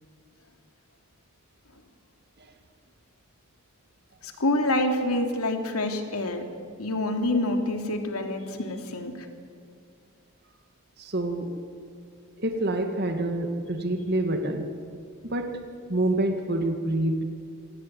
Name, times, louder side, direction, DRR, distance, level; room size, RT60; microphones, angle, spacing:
voice 1, 4.2-6.4 6.8-9.3, left 1 dB, 80° left, 5 dB, 3.0 m, -27 dB
voice 2, 11.0-11.5 12.4-14.7 15.3-15.5 15.9-17.2, right 1 dB, 45° right, 5 dB, 2.2 m, -27 dB
25.5 x 18.0 x 9.3 m, 2.3 s
head